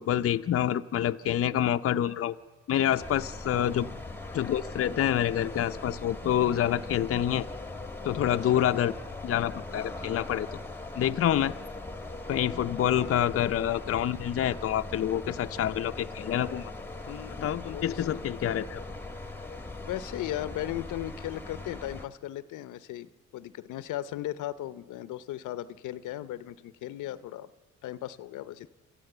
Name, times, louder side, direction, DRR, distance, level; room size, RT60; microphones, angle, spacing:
voice 1, 0.0-2.3 2.7-3.9 4.3-7.5 8.0-8.9 9.2-10.5 11.0-11.6 12.3-16.7 17.1-18.8, left 11 dB, 50° left, 8 dB, 0.6 m, -27 dB
sound 1, 3.0-22.1, left 2 dB, 5° left, 1.4 m, -40 dB
voice 2, 3.4-4.0 8.5-8.7 12.9-13.2 17.6-18.3 19.9-27.5 27.8-28.7, left 13 dB, 85° left, 15 dB, 0.7 m, -37 dB
27.5 x 14.0 x 7.9 m, 1.4 s
cardioid pair, 90°, 30 cm